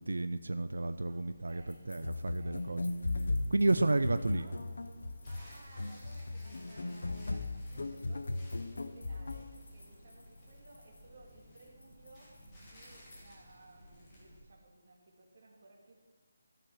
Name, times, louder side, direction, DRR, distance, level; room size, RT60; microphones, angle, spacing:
voice 1, 0.0-2.8 3.5-4.4, right 2 dB, 90° right, 11 dB, 0.4 m, -31 dB
sound 1, 0.7-14.4, equal, 15° left, 1.6 m, -57 dB
voice 2, 1.1-2.8 4.2-4.6 5.3-12.3 12.6-15.9, right 2 dB, 35° right, -1 dB, 1.9 m, -59 dB
sound 2, 1.5-13.6, left 2 dB, 85° left, 3.3 m, -62 dB
sound 3, 2.0-9.6, left 2 dB, 55° left, 0.7 m, -37 dB
12.5 x 5.9 x 6.2 m, 1.4 s
figure-of-eight pair, 180°, 0 cm